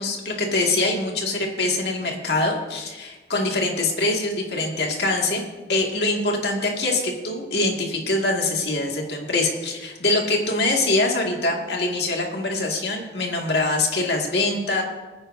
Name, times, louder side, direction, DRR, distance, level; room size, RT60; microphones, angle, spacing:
voice 1, 0.0-5.4 5.7-14.8, left 2 dB, 65° left, 0 dB, 2.0 m, -24 dB
21.5 x 9.9 x 2.7 m, 1.2 s
head